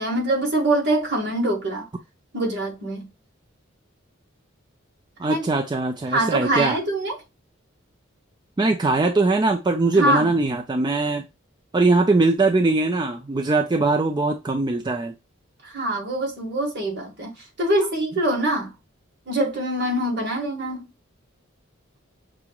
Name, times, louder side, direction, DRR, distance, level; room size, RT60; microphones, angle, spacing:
voice 1, 0.0-1.9 2.3-3.1 5.3-5.4 6.1-7.2 9.9-10.3 15.6-17.3 17.6-18.7 19.3-20.8, right 1 dB, 55° right, 1.8 m, -24 dB
voice 2, 5.2-6.8 8.6-11.3 11.7-15.1, right 3 dB, 20° right, 0.4 m, -21 dB
6.1 x 2.9 x 2.3 m
head